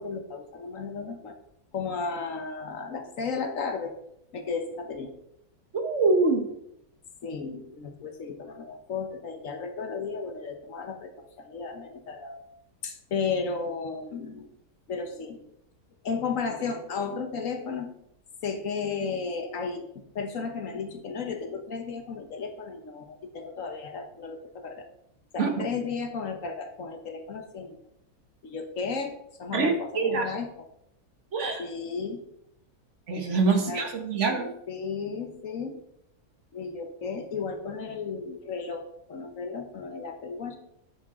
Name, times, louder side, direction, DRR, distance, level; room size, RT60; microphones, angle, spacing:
voice 1, 0.0-1.4 1.7-3.9 4.3-5.1 7.2-12.4 12.8-14.5 14.9-15.5 16.0-17.9 18.4-19.9 20.1-24.9 25.3-27.8 28.4-30.7 31.6-32.2 33.6-33.9 34.3-35.7 36.5-38.8 39.1-40.6, left 5 dB, 60° left, 6 dB, 1.3 m, -34 dB
voice 2, 5.7-6.4 25.4-25.6 29.5-30.3 31.3-31.6 33.1-34.5, right 3 dB, 55° right, 5 dB, 1.3 m, -25 dB
9.9 x 7.4 x 3.7 m, 0.77 s
omnidirectional pair, 1.6 m